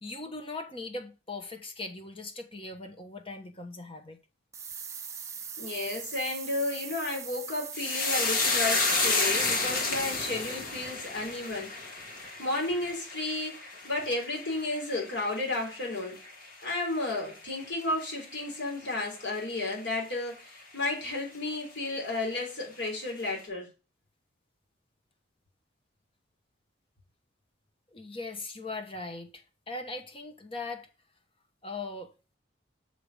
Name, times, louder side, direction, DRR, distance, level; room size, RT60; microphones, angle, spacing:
voice 1, 0.0-4.2 27.9-30.9 31.6-32.1, left 3 dB, 30° left, 1.1 m, -40 dB
sound 1, 4.5-8.6, right 7 dB, 15° right, 0.6 m, -41 dB
voice 2, 5.6-11.7 12.4-13.5 13.8-16.2 16.6-23.7, left 2 dB, 65° left, 3.8 m, -32 dB
sound 2, 7.7-16.3 16.6-17.3 17.6-17.8, left 3 dB, 45° left, 2.2 m, -31 dB
6.7 x 4.9 x 6.6 m
head